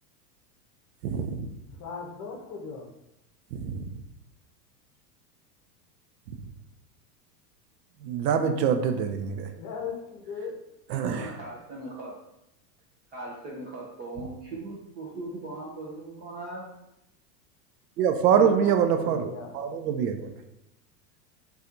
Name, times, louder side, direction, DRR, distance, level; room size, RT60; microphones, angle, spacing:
voice 1, 1.0-1.5 3.5-3.8 8.0-9.5 10.9-11.3 18.0-20.3, right 7 dB, 75° right, 7 dB, 0.6 m, -25 dB
voice 2, 1.7-2.9 9.5-10.6 19.0-19.5, left 5 dB, 40° left, 1 dB, 0.8 m, -38 dB
voice 3, 10.9-12.1 13.1-16.7 18.3-18.8, right 2 dB, 25° right, -3 dB, 0.4 m, -39 dB
4.0 x 2.4 x 2.5 m, 0.87 s
hypercardioid pair, 110°, 48 cm